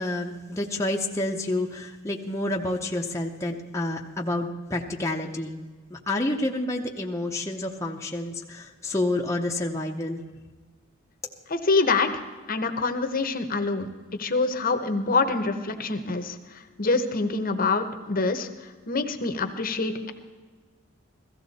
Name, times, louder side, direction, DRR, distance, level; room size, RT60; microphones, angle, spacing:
voice 1, 0.0-10.2, left 1 dB, 15° left, -1 dB, 0.8 m, -29 dB
voice 2, 11.5-12.2 12.5-20.1, left 3 dB, 40° left, 8 dB, 0.9 m, -26 dB
16.0 x 14.5 x 4.1 m, 1.3 s
head